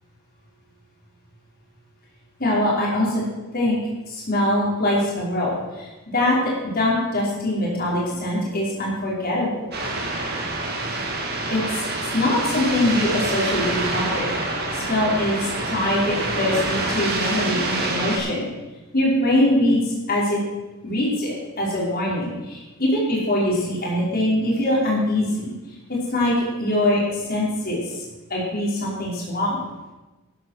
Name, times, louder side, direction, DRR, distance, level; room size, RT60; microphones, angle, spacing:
voice 1, 2.4-3.2 3.5-3.8 4.1-9.7 11.5-11.8 12.1-14.3 14.7-18.5 18.9-20.4 20.8-25.5 25.9-28.0 28.3-29.6, left 1 dB, 40° left, -4 dB, 5.0 m, -23 dB
sound 1, 9.7-18.2, right 2 dB, 45° right, 2.8 m, -26 dB
14.0 x 10.5 x 6.6 m, 1.1 s
head